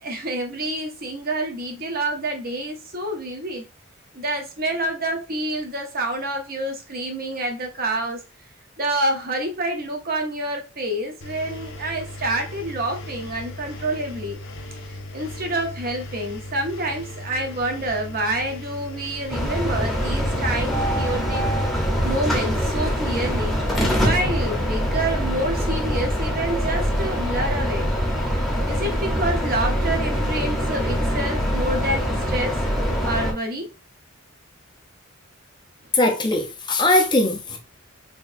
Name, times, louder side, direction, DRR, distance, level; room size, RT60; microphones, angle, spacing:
voice 1, 0.0-3.6 4.1-8.2 8.8-14.4 14.9-21.5 22.0-23.6 24.0-27.9 28.7-32.6 33.0-33.7, right 1 dB, 45° right, 0.8 m, -27 dB
Engine, 11.2-21.2, left 1 dB, 60° left, 0.6 m, -37 dB
sound 1, 19.3-33.3, equal, ahead, 0.8 m, -23 dB
voice 2, 35.9-37.6, left 2 dB, 20° left, 0.5 m, -20 dB
3.9 x 3.4 x 2.6 m
head